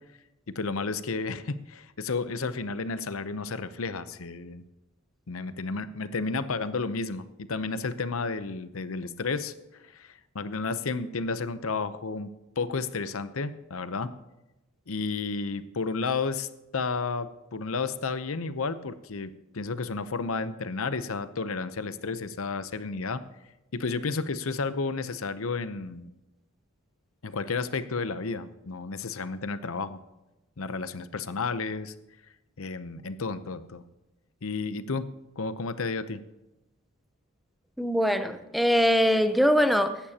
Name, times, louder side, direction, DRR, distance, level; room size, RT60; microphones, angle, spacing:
voice 1, 0.5-4.6 5.3-14.1 14.9-16.5 16.7-23.2 23.7-26.1 27.2-30.0 30.6-31.9 32.6-33.8 34.4-35.0 35.4-36.2, left 4 dB, 75° left, 12 dB, 0.7 m, -32 dB
voice 2, 37.8-40.0, equal, ahead, 9 dB, 0.7 m, -22 dB
16.0 x 11.5 x 2.9 m, 0.97 s
head